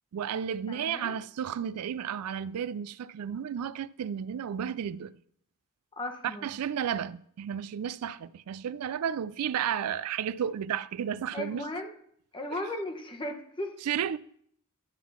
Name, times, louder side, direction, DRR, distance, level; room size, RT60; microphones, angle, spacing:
voice 1, 0.1-5.2 6.4-11.6 12.5-12.6 13.9-14.2, right 8 dB, 90° right, 0.4 m, -33 dB
voice 2, 0.7-1.1 6.0-6.5 11.3-11.9 12.3-13.8, left 1 dB, 25° left, 1.0 m, -36 dB
10.5 x 3.7 x 7.1 m
head